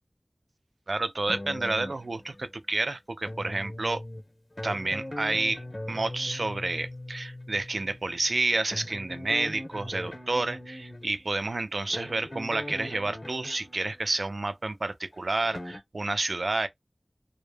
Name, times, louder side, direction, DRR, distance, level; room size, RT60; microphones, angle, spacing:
voice 1, 0.9-4.0 4.6-16.7, right 2 dB, 85° right, 0.3 m, -30 dB
sound 1, 1.3-2.6 3.2-14.4 15.1-15.8, left 1 dB, 50° left, 0.8 m, -40 dB
2.1 x 2.0 x 3.1 m
wide cardioid pair, 45°, 0 cm